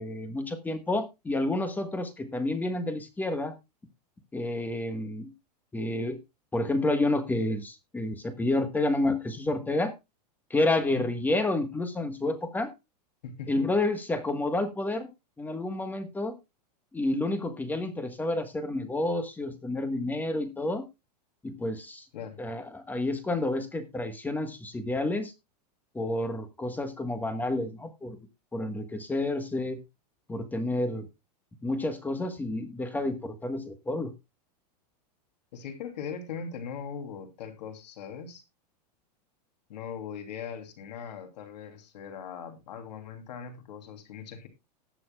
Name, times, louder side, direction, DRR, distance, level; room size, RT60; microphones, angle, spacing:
voice 1, 0.0-3.5 4.3-5.3 5.7-6.2 6.5-9.9 10.5-12.7 13.5-15.1 15.4-16.4 16.9-20.8 21.4-22.0 22.4-25.3 25.9-28.2 28.5-29.8 30.3-31.1 31.6-34.1, left 2 dB, 10° left, 9 dB, 1.3 m, -29 dB
voice 2, 13.2-13.7 22.1-22.4 35.5-38.4 39.7-44.5, left 6 dB, 80° left, 6 dB, 3.0 m, -40 dB
19.0 x 6.9 x 2.3 m, 0.24 s
supercardioid pair, 150°, 21 cm